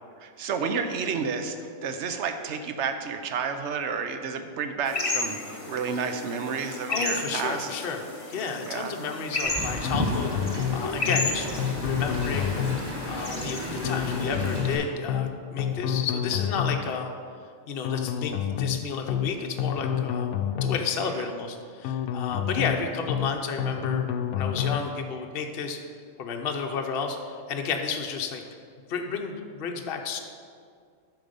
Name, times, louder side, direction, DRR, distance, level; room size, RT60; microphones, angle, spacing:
voice 1, 0.2-1.6 1.8-7.7 8.7-8.9 21.2-21.3, right 6 dB, 60° right, 7 dB, 0.9 m, -30 dB
sound 1, 4.8-14.3, left 3 dB, 25° left, 0.9 m, -34 dB
voice 2, 6.9-12.6 13.1-17.1 17.7-20.3 20.6-24.0 24.4-25.8 26.2-28.4 28.9-30.2, left 5 dB, 50° left, 3 dB, 0.9 m, -32 dB
Wind, 9.4-14.7, equal, 15° right, 1.8 m, -33 dB
sound 2, 9.8-10.8 11.1-11.3 11.6-12.8 13.8-14.8 15.1-15.3 15.6-16.8 17.8-18.8 19.1-19.3 19.6-20.8 21.8-22.8 23.1-23.3 23.6-24.8, left 9 dB, 80° left, 1.0 m, -28 dB
9.3 x 6.1 x 5.2 m, 2.1 s
omnidirectional pair, 1.5 m